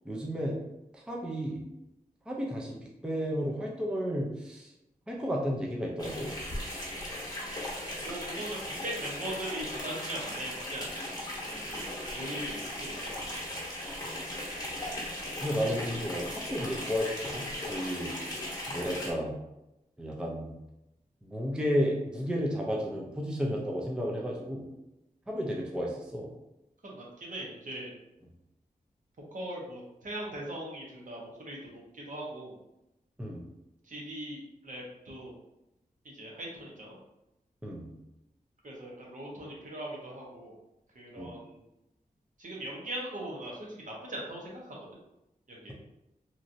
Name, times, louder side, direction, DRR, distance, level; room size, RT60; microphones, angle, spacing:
voice 1, 0.1-0.6 0.9-1.6 2.3-4.7 5.1-6.3 14.7-14.8 15.4-18.1 18.7-19.3 20.0-20.5 21.2-24.7 25.3-26.3 33.2-33.5 37.6-37.9 41.2-41.3, equal, 5° right, -2 dB, 0.4 m, -32 dB
sound 1, 6.0-19.1, left 1 dB, 25° left, 1.0 m, -37 dB
voice 2, 8.0-11.1 11.4-11.8 12.1-13.7 26.8-27.9 29.3-32.5 33.8-35.3 36.0-37.0 38.6-40.5 40.9-41.6 42.4-44.9 45.5-45.7, right 1 dB, 60° right, -3 dB, 0.9 m, -40 dB
3.0 x 2.6 x 2.5 m, 0.91 s
wide cardioid pair, 105°, 15 cm